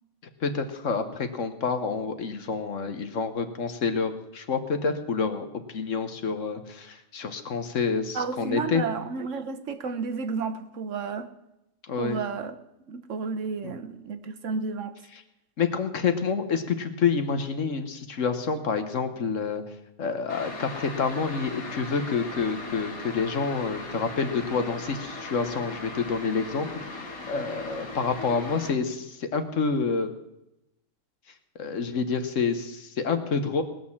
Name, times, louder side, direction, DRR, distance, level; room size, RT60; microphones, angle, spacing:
voice 1, 0.4-5.5 5.7-8.8 11.9-12.2 13.6-13.7 15.6-19.6 20.0-30.1 31.6-33.6, left 5 dB, 65° left, 8 dB, 1.4 m, -28 dB
voice 2, 8.1-11.3 12.0-12.6 12.9-15.0, right 5 dB, 65° right, 8 dB, 1.2 m, -32 dB
sound 1, 20.3-28.7, left 2 dB, 85° left, 2.2 m, -38 dB
19.5 x 6.5 x 7.2 m, 0.89 s
omnidirectional pair, 1.5 m